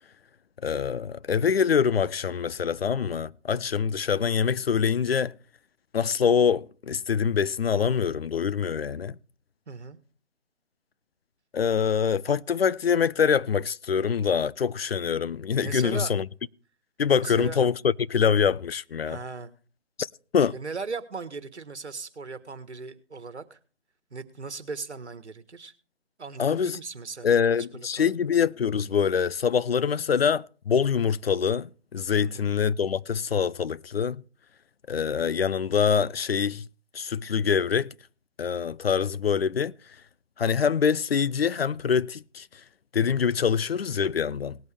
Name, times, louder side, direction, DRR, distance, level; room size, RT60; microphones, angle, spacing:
voice 1, 0.6-5.3 5.9-9.2 11.5-16.2 17.0-19.2 20.0-20.1 20.3-20.6 26.4-26.8 27.2-34.2 34.9-36.7 36.9-37.9 38.4-39.7 40.4-42.5 42.9-44.6, left 7 dB, 55° left, 0.5 m, -25 dB
voice 2, 9.7-10.0 15.6-16.1 17.2-17.6 19.0-19.5 20.5-23.6 24.1-25.7 26.2-28.1 32.2-32.5, right 4 dB, 70° right, 1.6 m, -38 dB
19.0 x 8.3 x 3.5 m
figure-of-eight pair, 150°, 35 cm